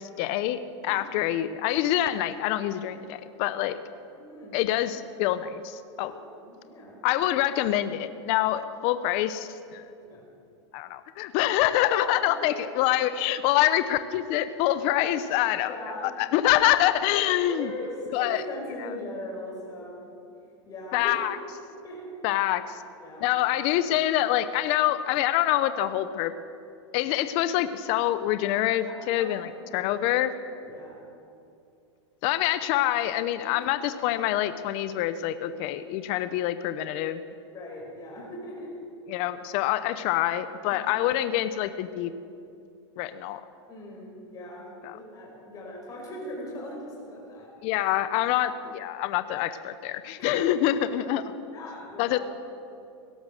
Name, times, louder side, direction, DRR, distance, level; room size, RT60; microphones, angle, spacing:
voice 1, 0.0-3.8 4.5-6.1 7.0-9.8 10.7-15.7 16.2-17.7 18.1-18.4 18.8-18.9 20.9-21.4 22.2-22.8 23.2-26.3 26.9-30.3 32.2-37.2 39.1-42.1 43.0-43.4 44.8-45.0 47.6-51.2 52.0-52.2, left 13 dB, 40° left, 12 dB, 0.7 m, -26 dB
voice 2, 4.1-4.6 6.0-7.0 9.9-10.2 11.8-12.3 14.9-16.1 16.6-16.7 17.2-20.1 20.6-21.3 21.8-22.1 23.0-23.3 28.8-29.3 29.6-30.0 30.3-31.0 37.5-38.7 40.7-40.9 43.7-47.5 50.2-50.8 51.5-52.2, left 1 dB, 25° left, -3 dB, 5.0 m, -40 dB
17.0 x 12.5 x 6.6 m, 2.5 s
supercardioid pair, 145°, 15 cm